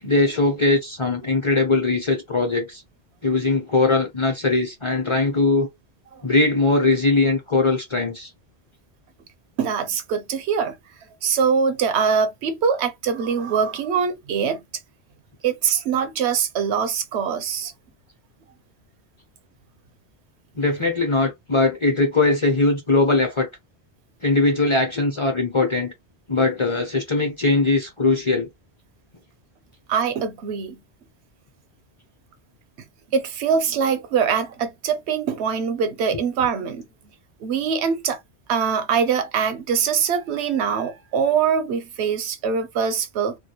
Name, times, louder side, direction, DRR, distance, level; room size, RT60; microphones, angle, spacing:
voice 1, 0.0-2.8 3.2-5.7 6.2-8.3 20.5-23.5 24.2-25.9 26.3-28.5, left 3 dB, 35° left, 0.5 m, -20 dB
voice 2, 9.6-10.7 11.2-14.6 15.4-17.7 29.9-30.8 33.1-36.9 37.4-38.2 38.5-43.4, right 6 dB, 85° right, 0.9 m, -23 dB
2.3 x 2.2 x 2.9 m
omnidirectional pair, 1.1 m